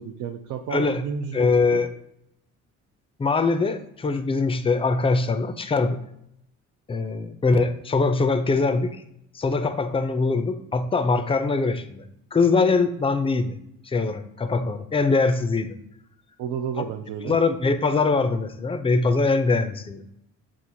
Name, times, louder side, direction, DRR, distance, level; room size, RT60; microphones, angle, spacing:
voice 1, 0.0-1.8 16.4-17.4, right 7 dB, 80° right, 4 dB, 0.5 m, -32 dB
voice 2, 0.7-1.0 1.3-1.9 3.2-6.0 6.9-9.0 9.3-12.0 12.3-13.6 13.9-15.8 17.2-20.1, left 3 dB, 20° left, 9 dB, 0.4 m, -22 dB
7.3 x 2.5 x 2.7 m, 0.77 s
cardioid pair, 90°, 30 cm